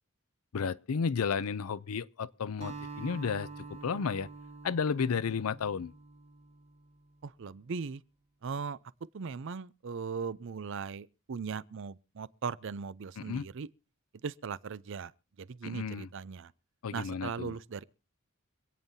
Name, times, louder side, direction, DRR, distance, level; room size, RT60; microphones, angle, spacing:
voice 1, 0.5-4.3 4.6-5.9 13.2-13.5 15.6-16.1 16.8-17.6, left 6 dB, 85° left, 0.5 m, -33 dB
Acoustic guitar, 2.6-7.1, right 4 dB, 30° right, 1.1 m, -46 dB
voice 2, 7.2-8.0 8.4-8.8 9.1-13.7 14.2-15.1 15.4-16.5 16.9-17.8, right 5 dB, 60° right, 0.5 m, -38 dB
26.0 x 9.0 x 2.7 m
head